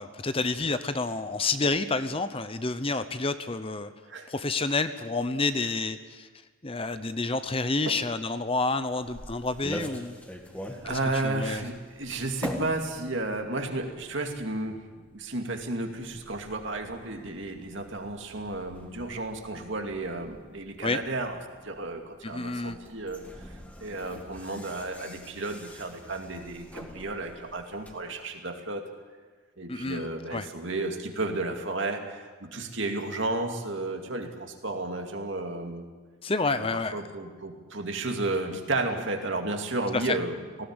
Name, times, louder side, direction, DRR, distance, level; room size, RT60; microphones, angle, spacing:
voice 1, 0.0-3.9 4.3-6.3 6.6-10.2 10.9-11.7 20.8-21.0 22.2-22.8 29.7-30.5 36.2-36.9 39.9-40.2, left 3 dB, 25° left, 11 dB, 0.7 m, -29 dB
sound 1, 8.8-27.9, equal, 5° left, 1.9 m, -44 dB
voice 2, 10.7-21.4 21.6-28.8 29.6-35.8 36.5-36.7 36.9-40.6, right 2 dB, 60° right, 4 dB, 2.5 m, -33 dB
19.0 x 17.0 x 9.8 m, 1.4 s
head